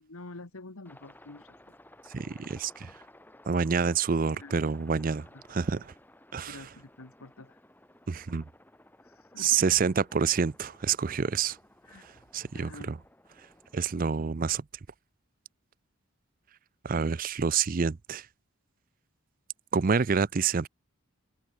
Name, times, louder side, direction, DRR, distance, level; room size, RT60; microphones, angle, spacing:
voice 1, 0.0-1.5 2.4-2.6 4.3-4.6 5.0-5.4 6.5-7.6 9.0-9.7 11.8-12.0 12.5-12.9, left 2 dB, 85° left, 1.6 m, -48 dB
Aircraft, 0.9-14.3, left 1 dB, 10° left, 3.2 m, -57 dB
voice 2, 2.1-2.9 3.5-5.8 6.3-6.6 8.1-8.4 9.4-11.6 12.3-13.0 13.7-14.6 16.8-18.3 19.7-20.7, right 5 dB, 40° right, 0.5 m, -27 dB
open air
head